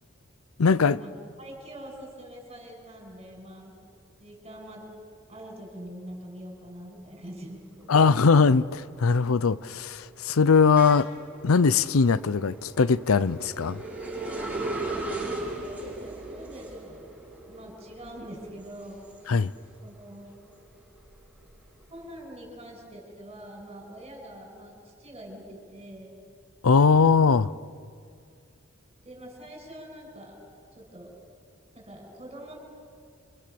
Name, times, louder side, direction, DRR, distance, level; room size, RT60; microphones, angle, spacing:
voice 1, 0.6-1.0 7.9-11.1 11.4-13.8 19.3-19.5 26.6-27.5, left 5 dB, 85° left, 0.6 m, -20 dB
voice 2, 1.4-3.8 4.2-4.9 5.3-8.0 15.0-17.2 17.4-19.1 19.8-20.4 21.9-26.2 29.0-30.4 30.7-31.2 31.7-32.6, equal, 30° right, 7.1 m, -44 dB
sound 1, 7.8-8.2 8.6-19.9 20.3-22.0, right 2 dB, 5° right, 6.7 m, -38 dB
29.5 x 25.5 x 7.0 m
head